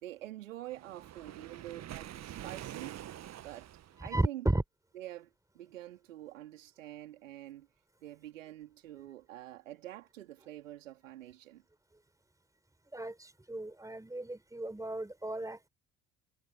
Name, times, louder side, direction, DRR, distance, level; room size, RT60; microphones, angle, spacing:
voice 1, 0.0-3.0 3.4-3.7 4.0-4.5 4.9-7.7 8.0-11.6, right 14 dB, 75° right, 3.7 m, -46 dB
Waves surf, 0.7-4.0, right 12 dB, 40° right, 1.6 m, -46 dB
voice 2, 12.9-15.7, right 1 dB, 10° right, 4.8 m, -35 dB
figure-of-eight pair, 55°, 39 cm